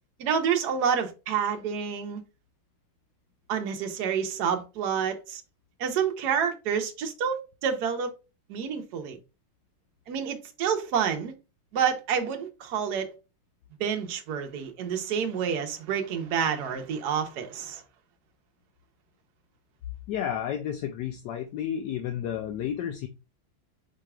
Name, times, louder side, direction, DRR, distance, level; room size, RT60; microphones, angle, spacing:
voice 1, 0.2-2.2 3.5-5.4 5.8-8.1 8.5-9.2 10.1-11.3 11.7-13.1 13.8-17.8, right 7 dB, 60° right, 1.2 m, -28 dB
voice 2, 20.1-23.1, left 9 dB, 75° left, 1.0 m, -31 dB
4.9 x 4.5 x 2.3 m
omnidirectional pair, 2.2 m